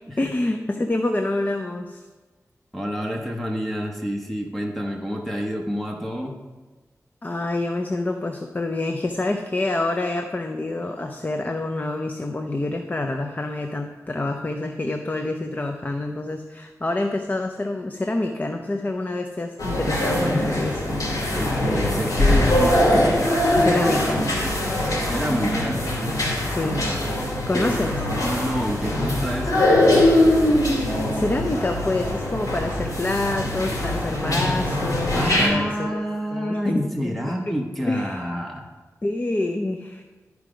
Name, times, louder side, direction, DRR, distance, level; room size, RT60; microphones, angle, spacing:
voice 1, 0.2-2.0 7.2-21.0 23.6-24.2 26.5-26.8 27.5-28.0 31.1-36.0 36.3-37.1 37.5-37.6 37.8-38.3 39.0-40.0, left 2 dB, 30° left, 5 dB, 0.5 m, -27 dB
voice 2, 2.7-6.4 21.3-23.0 25.0-25.8 27.5-27.8 28.2-29.7 35.1-38.6, equal, 5° left, -1 dB, 0.9 m, -28 dB
sound 1, 19.6-35.5, left 1 dB, 90° left, 2.6 m, -22 dB
12.0 x 4.8 x 5.1 m, 1.3 s
wide cardioid pair, 110°, 6 cm